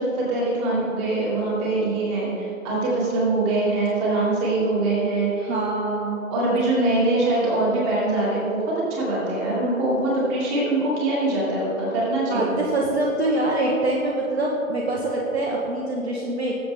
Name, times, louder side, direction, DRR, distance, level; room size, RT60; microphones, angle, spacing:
voice 1, 0.0-5.5 6.3-12.5, right 2 dB, 20° right, -5 dB, 3.2 m, -23 dB
voice 2, 5.4-6.2 12.3-16.6, right 2 dB, 50° right, -2 dB, 1.7 m, -24 dB
19.5 x 7.9 x 3.8 m, 2.9 s
figure-of-eight pair, 145°, 41 cm